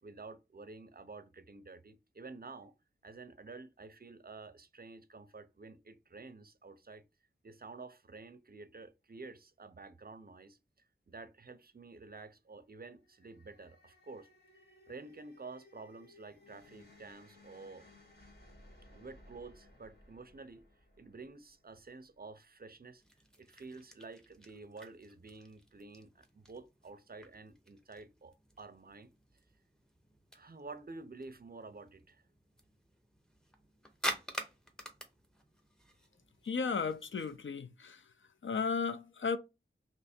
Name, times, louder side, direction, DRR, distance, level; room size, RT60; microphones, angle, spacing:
voice 1, 0.0-2.7 3.0-7.0 7.4-10.6 11.1-14.3 14.5-17.8 18.9-20.6 21.0-23.0 23.4-29.1 30.3-32.3, right 3 dB, 50° right, 0.5 m, -50 dB
sound 1, 12.9-22.2, left 1 dB, 50° left, 1.7 m, -61 dB
sound 2, 23.0-37.4, equal, 5° left, 0.8 m, -48 dB
voice 2, 36.4-38.0 38.4-39.4, left 5 dB, 70° left, 0.4 m, -34 dB
3.2 x 2.9 x 4.2 m
wide cardioid pair, 60°, 21 cm